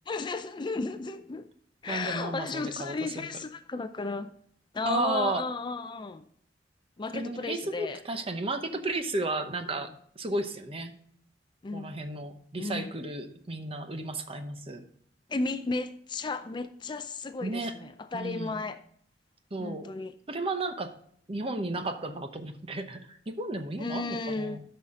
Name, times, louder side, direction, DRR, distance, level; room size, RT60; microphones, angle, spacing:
voice 1, 0.1-1.5 1.8-4.3 4.7-6.2 7.0-8.0 9.7-9.8 11.6-12.0 12.6-12.9 15.3-18.8 19.6-20.1 23.8-24.6, left 3 dB, 25° left, 0.4 m, -34 dB
voice 2, 1.9-3.3 4.8-5.5 7.1-9.9 10.2-10.9 11.7-14.8 17.4-17.7 18.1-18.6 19.5-19.9 20.3-20.9 21.3-24.6, right 2 dB, 35° right, 0.8 m, -33 dB
12.0 x 5.7 x 3.7 m
head